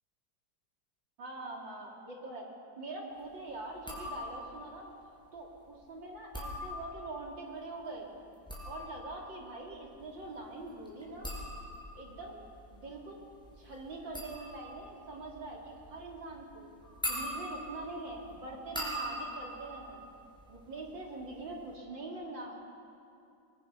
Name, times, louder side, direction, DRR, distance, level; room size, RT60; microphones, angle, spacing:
voice 1, 1.2-2.5 2.8-4.9 5.3-8.1 8.6-11.4 11.9-12.4 12.7-13.2 13.6-16.7 17.0-20.0 20.5-22.6, right 2 dB, 70° right, -2 dB, 4.1 m, -43 dB
sound 1, 3.8-4.6 6.1-7.2 8.2-20.9 21.2-21.7, equal, ahead, 5.2 m, -42 dB
24.5 x 23.5 x 5.5 m, 2.6 s
omnidirectional pair, 2.1 m